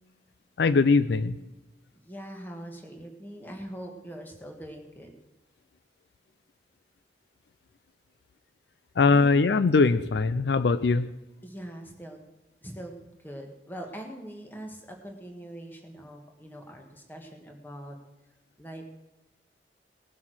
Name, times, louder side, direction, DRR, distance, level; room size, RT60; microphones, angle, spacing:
voice 1, 0.6-1.4 9.0-11.1, left 4 dB, 70° left, 14 dB, 0.4 m, -21 dB
voice 2, 1.9-5.1 9.1-9.4 11.4-12.2 12.6-18.0 18.6-18.9, right 1 dB, 10° left, 2 dB, 1.6 m, -42 dB
19.0 x 7.4 x 6.2 m, 1.0 s
head